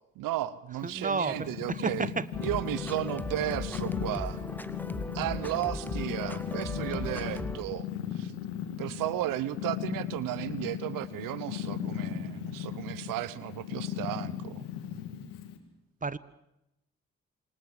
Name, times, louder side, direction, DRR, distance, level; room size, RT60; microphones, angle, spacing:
voice 1, 0.2-2.1 2.4-4.4 5.1-7.9 8.1-8.3 8.8-14.6, right 14 dB, 80° right, 18 dB, 1.1 m, -34 dB
Purr, 0.8-15.6, left 9 dB, 90° left, 2.6 m, -37 dB
voice 2, 0.8-2.3 16.0-16.2, right 4 dB, 25° right, 18 dB, 1.4 m, -31 dB
sound 1, 2.3-7.6, left 1 dB, 5° left, 2.2 m, -38 dB
27.5 x 24.5 x 7.5 m, 0.89 s
hypercardioid pair, 40°, 33 cm